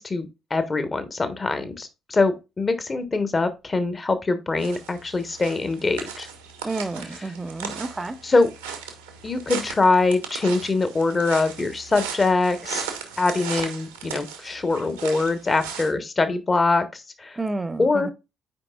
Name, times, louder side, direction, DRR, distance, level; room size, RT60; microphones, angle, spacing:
voice 1, 0.0-6.3 8.2-8.5 9.2-12.9 13.2-17.4 17.8-18.1, left 3 dB, 30° left, 1.2 m, -23 dB
sound 1, 4.6-15.9, right 7 dB, 85° right, 1.2 m, -37 dB
voice 2, 6.6-8.2 17.4-18.1, right 2 dB, 20° right, 0.8 m, -30 dB
9.4 x 4.9 x 2.4 m
figure-of-eight pair, 45°, 0 cm